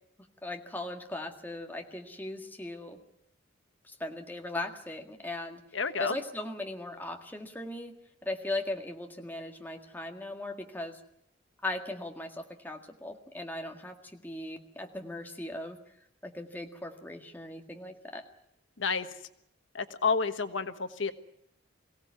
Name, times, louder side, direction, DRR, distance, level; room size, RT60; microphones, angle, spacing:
voice 1, 0.4-3.0 3.8-5.6 6.0-8.0 8.2-11.0 11.6-15.8 16.2-18.2, left 2 dB, 10° left, 3 dB, 1.8 m, -38 dB
voice 2, 5.7-6.1 18.8-19.1 19.7-21.1, left 5 dB, 80° left, 10 dB, 1.3 m, -30 dB
23.5 x 17.0 x 9.5 m, 0.78 s
head